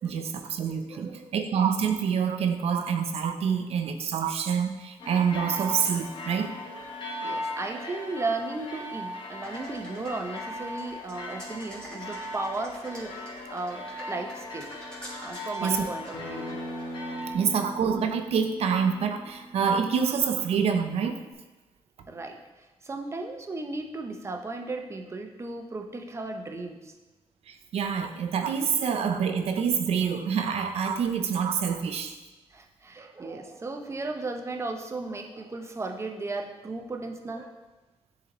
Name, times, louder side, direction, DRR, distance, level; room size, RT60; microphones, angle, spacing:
voice 1, 0.0-6.5 15.6-15.9 17.3-21.1 27.5-32.1, right 7 dB, 75° right, 6 dB, 0.6 m, -27 dB
voice 2, 0.9-1.3 7.2-13.2 13.5-14.7 15.2-16.6 22.1-26.9 32.5-37.6, right 3 dB, 25° right, 3 dB, 0.7 m, -35 dB
sound 1, 5.0-17.3, left 1 dB, 50° left, 1.1 m, -38 dB
sound 2, 9.4-17.1, equal, 5° left, 1.7 m, -47 dB
Acoustic guitar, 16.1-21.3, equal, 75° left, 1.6 m, -41 dB
9.9 x 3.9 x 3.0 m, 1.1 s
cardioid pair, 125°, 11 cm